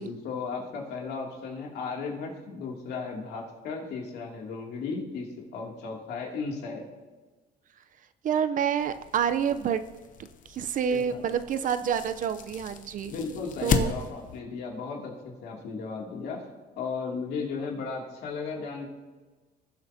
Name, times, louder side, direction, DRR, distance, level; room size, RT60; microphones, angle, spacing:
voice 1, 0.0-6.8 10.9-11.3 13.1-16.4 16.8-18.9, left 4 dB, 75° left, -1 dB, 2.6 m, -35 dB
voice 2, 8.2-9.8 10.5-13.2 13.6-13.9, right 8 dB, 50° right, 11 dB, 0.6 m, -28 dB
sound 1, 8.8-14.4, left 6 dB, 50° left, 0.9 m, -35 dB
19.0 x 7.8 x 2.8 m, 1.3 s
cardioid pair, 110°, 17 cm